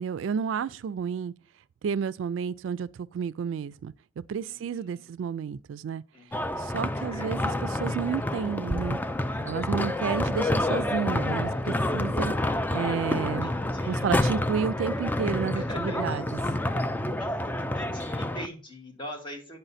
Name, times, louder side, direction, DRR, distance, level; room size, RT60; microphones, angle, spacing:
voice 1, 0.0-1.3 1.8-3.9 4.3-6.0 6.6-9.0 9.4-12.3 12.7-13.5 13.9-16.2, right 7 dB, 80° right, 0.3 m, -31 dB
voice 2, 4.5-5.1 6.1-6.9 7.1-7.3 11.5-11.6 13.4-14.3 15.5-19.6, left 1 dB, 25° left, 1.9 m, -45 dB
sound 1, 6.3-18.5, left 1 dB, 10° left, 0.4 m, -28 dB
9.0 x 5.5 x 4.1 m
head